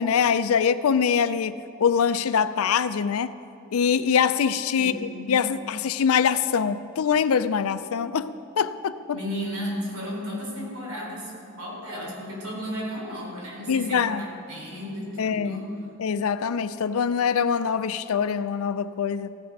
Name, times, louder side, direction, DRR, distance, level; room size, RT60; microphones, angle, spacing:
voice 1, 0.0-1.5 1.8-3.3 3.7-5.0 5.3-9.2 13.7-14.2 15.2-15.6 16.0-19.3, left 7 dB, 75° left, 13 dB, 0.4 m, -23 dB
voice 2, 4.8-5.3 9.1-11.3 11.6-15.8, equal, 75° right, -2 dB, 4.0 m, -34 dB
16.0 x 11.0 x 5.3 m, 2.6 s
head